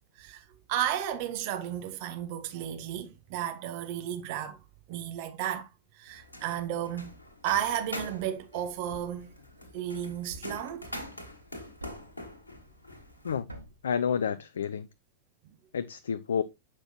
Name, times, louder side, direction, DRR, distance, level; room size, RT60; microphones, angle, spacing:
voice 1, 0.2-4.6 4.9-5.7 5.9-7.1 7.4-9.3 9.7-10.9, right 10 dB, 45° right, 0.9 m, -33 dB
sound 1, 6.1-13.4, left 1 dB, 85° left, 1.3 m, -44 dB
Thump thud, 8.9-9.3 10.3-10.7 11.8-12.2 13.5-13.9, right 1 dB, 85° right, 1.1 m, -46 dB
voice 2, 13.8-14.9 15.7-16.4, left 7 dB, 65° left, 0.3 m, -29 dB
7.5 x 5.8 x 2.8 m
figure-of-eight pair, 90°, 0 cm